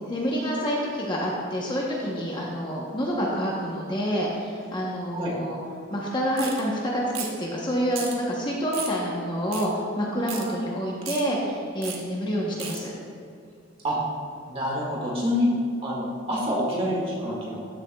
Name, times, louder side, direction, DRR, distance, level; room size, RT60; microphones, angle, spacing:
voice 1, 0.0-5.6 5.9-7.0 7.4-12.9, equal, 20° left, -3 dB, 0.9 m, -28 dB
sound 1, 6.4-6.6 7.1-7.4 7.9-8.1 8.7-9.0 9.5-9.7 10.3-10.4 11.0-11.2 11.8-12.0 12.6-12.8, right 7 dB, 75° right, 1.2 m, -34 dB
voice 2, 14.5-15.5 15.8-17.7, left 1 dB, 25° right, -5 dB, 1.8 m, -27 dB
13.0 x 6.9 x 2.3 m, 2.3 s
head